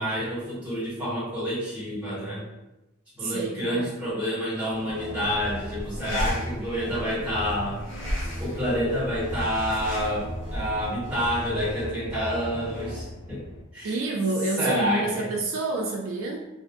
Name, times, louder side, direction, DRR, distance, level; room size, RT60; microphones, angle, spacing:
voice 1, 0.0-2.5 3.1-7.8 8.4-13.4 13.7-14.0 14.6-15.2, equal, 5° right, -12 dB, 1.2 m, -28 dB
voice 2, 3.2-4.0 13.8-16.5, right 2 dB, 70° right, 1 dB, 0.3 m, -28 dB
sound 1, 4.7-13.0, equal, 30° left, 1.4 m, -39 dB
sound 2, 5.2-11.7, equal, 60° left, 1.0 m, -36 dB
sound 3, 8.7-13.6, left 1 dB, 80° left, 0.4 m, -43 dB
2.5 x 2.2 x 2.5 m, 0.96 s
head